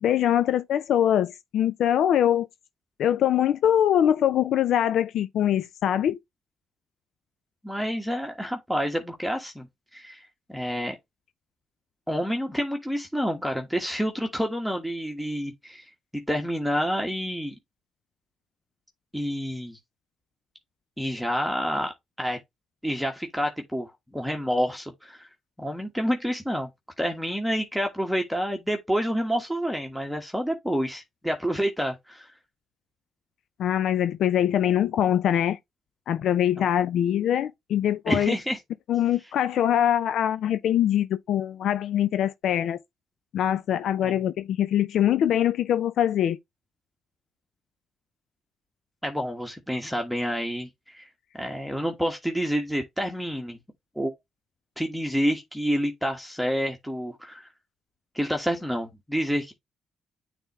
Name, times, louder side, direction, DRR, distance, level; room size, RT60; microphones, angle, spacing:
voice 1, 0.0-2.5 3.0-6.2 33.6-35.6 36.1-38.3 38.9-42.8 43.3-46.4, left 10 dB, 75° left, 0.4 m, -23 dB
voice 2, 7.6-9.7 9.9-10.2 10.5-11.0 12.1-15.8 16.1-17.5 19.1-19.8 21.0-22.4 22.8-25.3 25.6-26.7 27.0-32.3 36.6-36.7 38.1-38.6 44.0-44.2 49.0-51.1 51.3-53.6 53.9-54.1 54.8-57.5 58.1-59.5, equal, ahead, 1.4 m, -28 dB
9.0 x 3.5 x 3.0 m
cardioid pair, 90°, 0 cm